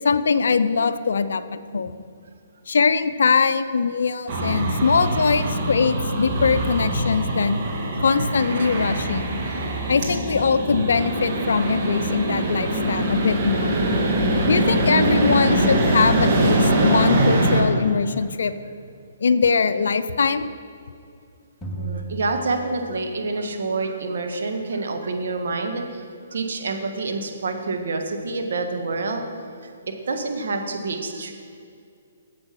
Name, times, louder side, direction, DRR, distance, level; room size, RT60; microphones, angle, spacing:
voice 1, 0.0-1.4 1.7-1.9 2.7-7.6 8.0-9.3 9.9-13.8 14.5-18.5 19.2-20.5, left 5 dB, 75° left, 12 dB, 0.5 m, -21 dB
sound 1, 4.3-17.6, right 1 dB, 45° right, 2.0 m, -22 dB
sound 2, 21.6-23.4, right 3 dB, 10° left, 1.4 m, -34 dB
voice 2, 21.7-26.0 26.3-29.2 29.6-31.3, right 3 dB, 70° right, 4 dB, 1.4 m, -27 dB
8.6 x 7.6 x 5.9 m, 2.4 s
hypercardioid pair, 135°, 0 cm